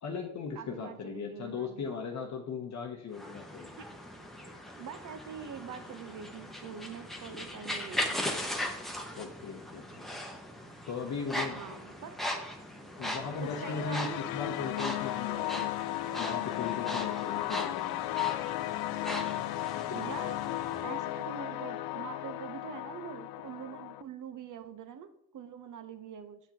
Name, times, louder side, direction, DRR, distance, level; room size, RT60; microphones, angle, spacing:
voice 1, 0.0-3.7 9.2-10.0 10.9-11.8 13.0-15.7 16.1-18.0 19.9-20.0, left 5 dB, 45° left, 3 dB, 0.9 m, -38 dB
voice 2, 0.5-1.9 3.8-4.0 4.4-8.2 11.4-12.4 13.4-14.2 19.9-20.4 20.8-26.4, right 7 dB, 45° right, 10 dB, 0.8 m, -44 dB
sound 1, 3.1-20.8, left 1 dB, ahead, 1.0 m, -39 dB
sound 2, 13.0-24.0, left 16 dB, 60° left, 0.5 m, -35 dB
8.0 x 5.8 x 2.9 m, 0.72 s
supercardioid pair, 75°, 41 cm